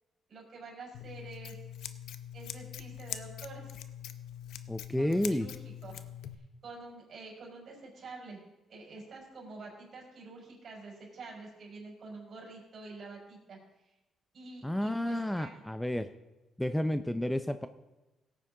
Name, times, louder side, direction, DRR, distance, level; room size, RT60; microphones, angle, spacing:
voice 1, 0.3-1.6 2.3-3.7 5.0-6.0 6.6-8.4 8.7-14.0 14.3-15.6, right 3 dB, 55° right, -2 dB, 4.8 m, -48 dB
Scissors, 0.9-6.3, left 10 dB, 80° left, 0.6 m, -43 dB
voice 2, 4.7-5.5 14.6-16.1 16.6-17.7, left 1 dB, 5° left, 10 dB, 0.5 m, -31 dB
17.0 x 9.1 x 3.8 m, 1.1 s
cardioid pair, 90°, 0 cm